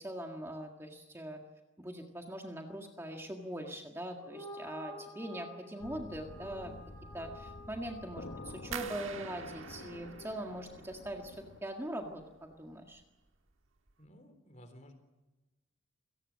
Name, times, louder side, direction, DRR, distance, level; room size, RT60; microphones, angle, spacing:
voice 1, 0.0-1.4 1.8-6.7 7.1-13.0, right 1 dB, 10° right, 2 dB, 1.7 m, -42 dB
sound 1, 4.1-10.7, left 1 dB, 10° left, 3.5 m, -51 dB
sound 2, 5.8-11.6, left 2 dB, 55° left, 0.9 m, -49 dB
sound 3, 8.7-11.6 11.9-12.6 12.9-13.3 13.8-13.9, right 7 dB, 70° right, 1.5 m, -47 dB
voice 2, 14.0-14.9, equal, 35° left, 8 dB, 3.6 m, -55 dB
27.5 x 18.0 x 7.5 m, 1.1 s
head